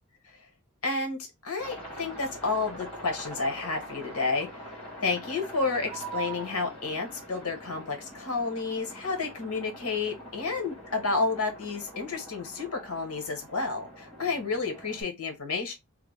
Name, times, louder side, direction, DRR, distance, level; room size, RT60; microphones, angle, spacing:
voice 1, 0.8-4.7 5.0-15.7, left 3 dB, 85° left, 1.2 m, -31 dB
Aircraft, 1.6-15.0, equal, 25° left, 1.7 m, -44 dB
sound 1, 5.9-7.3 11.0-11.3, right 9 dB, 10° right, 0.5 m, -40 dB
3.4 x 2.2 x 3.4 m
head